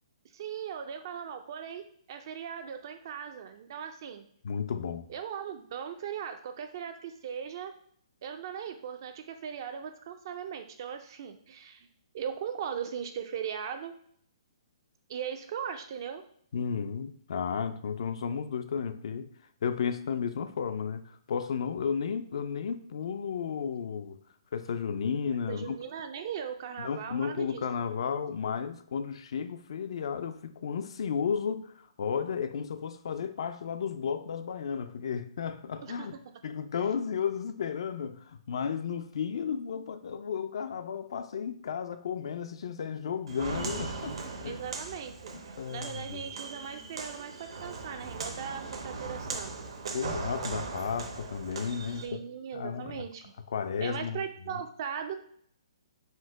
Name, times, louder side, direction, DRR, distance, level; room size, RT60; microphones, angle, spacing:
voice 1, 0.3-1.8 2.1-4.2 5.1-7.7 8.2-11.9 12.1-13.9 15.1-16.2 25.5-27.6 35.8-36.2 44.4-45.1 45.4-49.5 52.0-53.3 53.8-55.2, right 8 dB, 40° right, 0.3 m, -38 dB
voice 2, 4.4-5.1 16.5-19.3 19.6-24.2 24.5-25.8 26.8-36.2 36.4-44.6 45.3-46.2 49.9-52.2 52.5-53.0 53.5-54.2 54.5-54.6, left 6 dB, 60° left, 0.4 m, -33 dB
Walk footsteps, 43.3-52.1, right 4 dB, 65° right, 0.8 m, -39 dB
4.4 x 2.1 x 4.6 m
hypercardioid pair, 165°, 3 cm